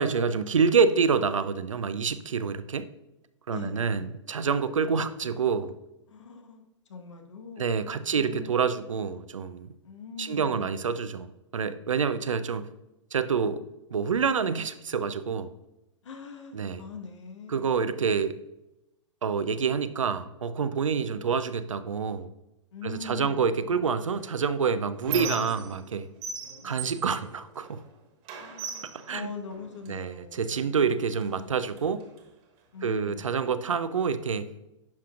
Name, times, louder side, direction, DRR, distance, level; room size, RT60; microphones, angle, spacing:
voice 1, 0.0-2.9 3.5-5.7 7.6-9.7 10.2-12.6 13.1-13.6 13.9-15.5 16.5-16.8 17.5-18.4 19.2-22.3 22.8-26.1 26.6-27.8 29.1-29.3 29.9-32.1 32.8-34.5, right 6 dB, 80° right, 12 dB, 0.6 m, -27 dB
voice 2, 3.5-4.1 4.7-5.2 6.1-6.6 6.9-8.6 9.8-11.0 16.0-18.0 22.7-23.7 26.6-27.1 28.4-31.0 32.7-33.6, left 5 dB, 70° left, 4 dB, 1.3 m, -43 dB
Squeak, 24.1-25.9 26.2-27.9 28.3-30.0 30.7-30.9 31.2-32.2, right 5 dB, 40° right, 1.5 m, -38 dB
10.5 x 5.8 x 2.5 m, 0.94 s
figure-of-eight pair, 110°, 16 cm